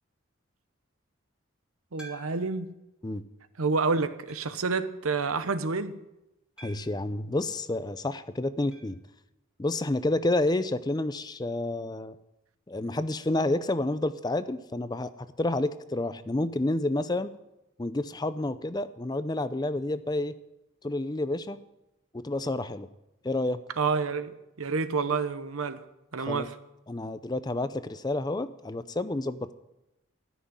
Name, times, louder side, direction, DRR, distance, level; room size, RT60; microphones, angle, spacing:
voice 1, 1.9-2.7 3.6-5.9 23.8-25.8 26.1-26.5, right 4 dB, 90° right, 0.9 m, -29 dB
sound 1, 2.0-2.7 3.3-3.4 4.3-4.7 6.6-7.1 8.7-9.0 9.3-9.4 9.6-9.7 11.7-11.8, right 1 dB, 5° right, 2.1 m, -50 dB
voice 2, 6.6-9.0 9.6-12.2 12.7-15.1 15.4-17.3 17.8-20.3 20.8-21.6 22.1-22.9 23.2-23.6 26.2-26.5 26.9-29.5, left 2 dB, 20° left, 0.4 m, -29 dB
13.5 x 6.2 x 9.5 m
head